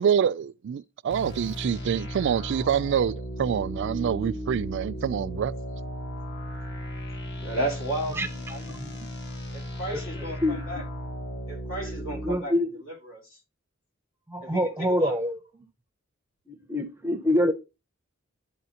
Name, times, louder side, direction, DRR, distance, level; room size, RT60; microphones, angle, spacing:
voice 1, 0.0-5.5, right 8 dB, 60° right, 0.3 m, -26 dB
sound 1, 1.1-12.4, equal, 55° left, 1.3 m, -36 dB
voice 2, 7.4-8.7 9.5-10.8 11.5-12.5 12.9-13.2 14.4-15.1, right 1 dB, 75° left, 2.5 m, -34 dB
voice 3, 8.7-9.1 9.9-10.8 12.2-12.8 14.3-15.4 16.5-17.5, left 1 dB, 10° right, 0.6 m, -26 dB
11.0 x 4.2 x 2.8 m
head